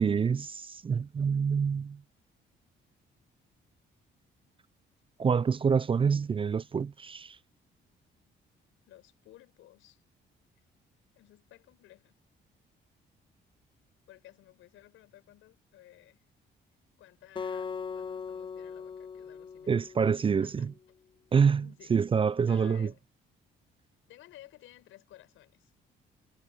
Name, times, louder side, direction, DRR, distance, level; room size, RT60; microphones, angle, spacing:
voice 1, 0.0-2.0 5.2-7.4 19.7-20.7 21.3-21.6 21.9-22.9, right 6 dB, 25° right, 0.4 m, -26 dB
voice 2, 8.9-10.0 11.1-12.1 14.1-16.2 17.0-19.8 20.4-20.7 21.3-21.9 22.5-23.0 24.1-25.7, left 14 dB, 90° left, 6.1 m, -55 dB
Acoustic guitar, 17.4-20.6, left 6 dB, 25° left, 0.5 m, -40 dB
cardioid pair, 90°, 20 cm